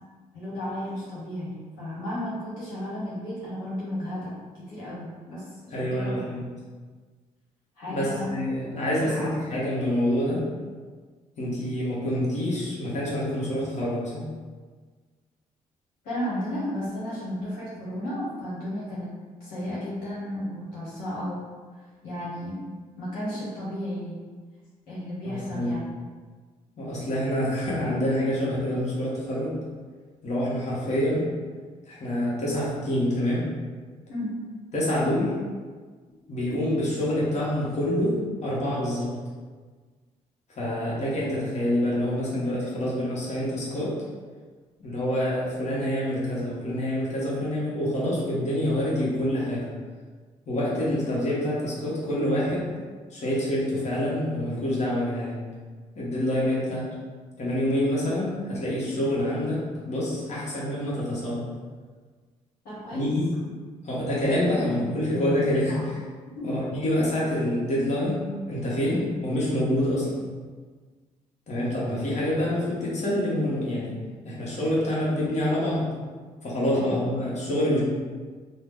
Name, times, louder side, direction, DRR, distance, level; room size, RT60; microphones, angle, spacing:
voice 1, 0.3-6.2 7.8-8.3 8.9-9.3 16.0-19.1 19.4-21.5 21.7-22.6 23.0-24.2 24.9-25.9 34.1-34.4 62.6-63.1 65.7-65.8 66.3-66.6 68.8-69.0 76.7-77.0, equal, 85° left, -9 dB, 1.0 m, -34 dB
voice 2, 5.7-6.5 7.8-10.4 11.4-14.3 25.2-25.7 26.8-29.6 30.2-31.3 31.9-33.5 34.7-35.4 36.3-39.1 40.6-43.9 44.8-49.6 50.5-52.7 53.1-55.4 55.9-56.9 57.4-61.5 62.9-63.3 63.8-65.8 66.4-70.2 71.5-74.0 74.2-75.9 76.4-77.8, left 1 dB, 50° left, -7 dB, 1.1 m, -26 dB
2.8 x 2.0 x 3.5 m, 1.5 s
supercardioid pair, 65°, 14 cm